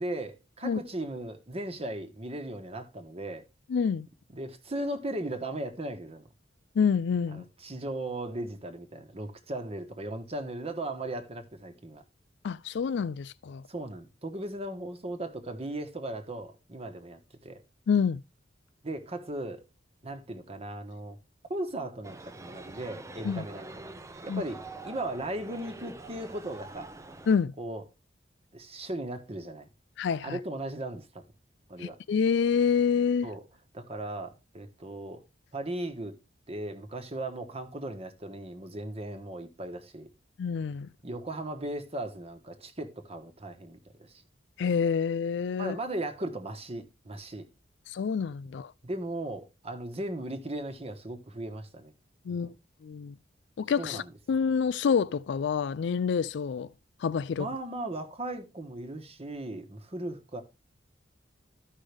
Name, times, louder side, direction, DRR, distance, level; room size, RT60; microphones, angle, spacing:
voice 1, 0.0-3.4 4.3-6.3 7.3-12.0 13.7-17.6 18.8-19.6 20.0-21.2 21.5-23.7 24.2-26.9 27.6-27.8 28.5-29.7 30.2-31.2 31.7-32.0 33.2-33.4 33.7-35.2 35.5-36.1 36.5-40.1 41.0-44.2 45.6-47.4 48.8-51.9 52.3-52.5 53.8-54.1 57.4-60.4, right 1 dB, 35° right, 1.2 m, -37 dB
voice 2, 3.7-4.1 6.8-7.4 12.4-13.6 17.9-18.2 23.2-23.5 24.3-24.4 27.3-27.5 30.0-30.4 31.8-33.3 40.4-40.9 44.6-45.8 47.9-48.7 52.3-52.5 52.8-53.1 53.6-54.0 54.3-56.7 57.0-57.5, left 6 dB, 70° left, 0.4 m, -27 dB
sound 1, 22.0-27.4, right 2 dB, 15° right, 0.6 m, -45 dB
13.0 x 5.4 x 3.4 m
head